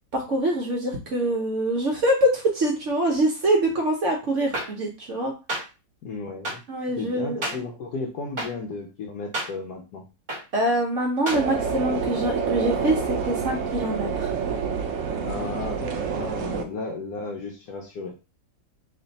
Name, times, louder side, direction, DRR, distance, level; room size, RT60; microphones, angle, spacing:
voice 1, 0.1-5.3 6.7-7.4 10.5-14.3, right 1 dB, 55° right, 0 dB, 0.9 m, -24 dB
sound 1, 4.5-4.6 5.5-5.6 6.4-6.5 7.4-7.5 8.4-8.5 9.3-9.5 10.3-10.4 11.3-11.4, right 1 dB, 30° right, 1.2 m, -28 dB
voice 2, 6.0-6.6 7.0-10.0 15.0-18.2, left 3 dB, 70° left, 0 dB, 1.1 m, -34 dB
sound 2, 11.3-16.6, right 6 dB, 85° right, 0.6 m, -28 dB
3.2 x 2.7 x 4.0 m, 0.31 s
omnidirectional pair, 2.0 m